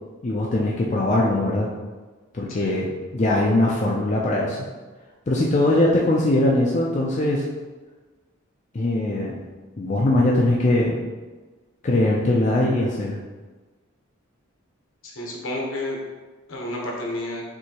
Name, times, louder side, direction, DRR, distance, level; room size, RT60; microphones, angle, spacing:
voice 1, 0.2-1.7 2.3-2.9 3.1-4.6 5.3-7.4 8.7-9.4 9.8-11.0 11.8-13.2, left 1 dB, 35° left, -3 dB, 0.4 m, -21 dB
voice 2, 15.0-16.0 16.5-17.4, left 1 dB, 70° left, -2 dB, 1.0 m, -30 dB
6.0 x 2.7 x 2.9 m, 1.3 s
head